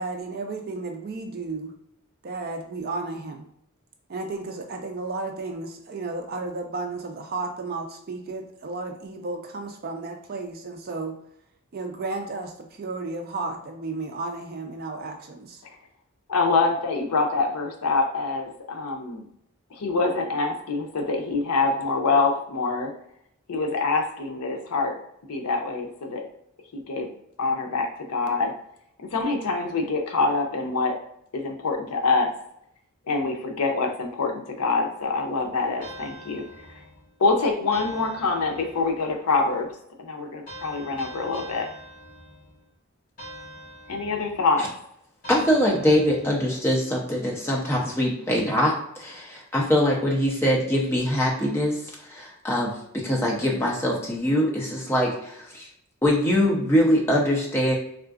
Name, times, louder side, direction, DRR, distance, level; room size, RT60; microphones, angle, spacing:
voice 1, 0.0-1.7 2.2-3.5 4.1-11.2 11.7-15.6, right 3 dB, 45° right, 4 dB, 0.4 m, -33 dB
voice 2, 16.3-19.2 19.7-22.9 23.5-25.0 25.3-26.2 26.7-27.1 27.4-28.5 29.0-31.0 31.3-32.3 33.1-36.4 37.2-39.7 40.0-41.7 43.9-44.7, left 3 dB, 85° left, 4 dB, 0.6 m, -25 dB
sound 1, 35.8-37.1 37.7-39.0 40.5-42.6 43.2-44.5 45.2-46.5, right 1 dB, 35° left, 1.1 m, -43 dB
voice 3, 45.3-51.8 52.1-52.7 53.0-55.7 56.0-57.8, equal, 10° left, -3 dB, 0.6 m, -23 dB
3.7 x 2.4 x 2.4 m, 0.75 s
head